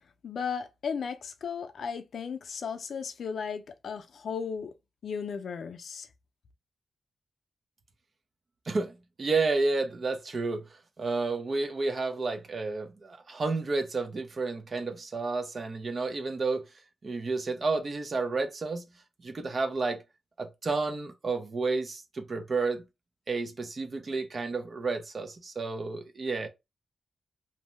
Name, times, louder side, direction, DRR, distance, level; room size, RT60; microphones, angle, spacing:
voice 1, 0.2-4.7 5.0-6.1, left 6 dB, 75° left, 0.4 m, -35 dB
voice 2, 8.7-10.7 11.0-16.7 17.0-18.8 19.2-20.0 20.4-22.8 23.3-26.5, right 3 dB, 45° right, 0.5 m, -31 dB
2.6 x 2.1 x 3.0 m
wide cardioid pair, 135°, 0 cm